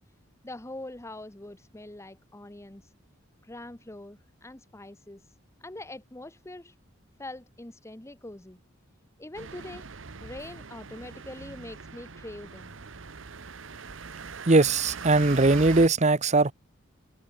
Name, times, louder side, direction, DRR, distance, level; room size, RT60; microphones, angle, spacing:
voice 1, 0.4-2.9 3.4-5.3 5.6-6.7 7.2-8.6 9.2-9.9 10.2-12.7, left 1 dB, 15° left, 1.0 m, -43 dB
sound 1, 9.3-15.9, right 5 dB, 85° right, 1.1 m, -41 dB
voice 2, 14.5-16.5, right 3 dB, 35° right, 1.0 m, -20 dB
head